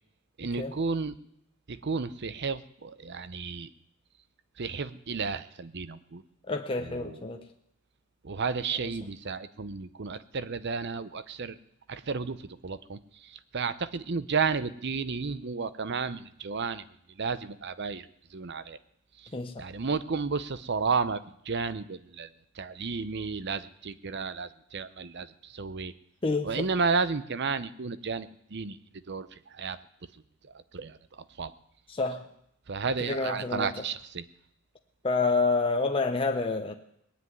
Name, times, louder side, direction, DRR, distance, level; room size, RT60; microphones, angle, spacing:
voice 1, 0.4-1.1 1.7-3.7 4.6-6.2 6.8-7.4 8.2-11.6 11.9-12.4 12.6-16.8 17.2-18.1 18.3-18.8 19.2-19.3 19.6-22.3 22.6-25.9 26.4-28.8 29.1-29.8 30.7-31.0 31.4-31.5 32.7-34.2, right 5 dB, 50° right, 14 dB, 0.7 m, -32 dB
voice 2, 6.5-7.4 8.8-8.9 19.3-19.6 26.2-26.7 31.9-32.2 33.0-33.7 35.0-36.7, left 3 dB, 25° left, 3 dB, 0.7 m, -28 dB
19.5 x 7.8 x 9.5 m, 0.77 s
head